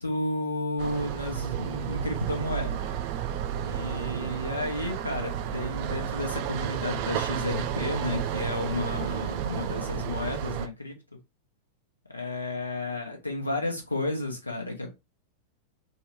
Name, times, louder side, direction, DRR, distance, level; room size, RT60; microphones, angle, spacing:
voice 1, 0.0-2.8 3.6-10.9 12.1-14.9, left 2 dB, 80° left, 0.8 m, -32 dB
sound 1, 0.8-10.7, right 10 dB, 45° right, 0.3 m, -32 dB
3.7 x 2.1 x 2.9 m
figure-of-eight pair, 90°, 0 cm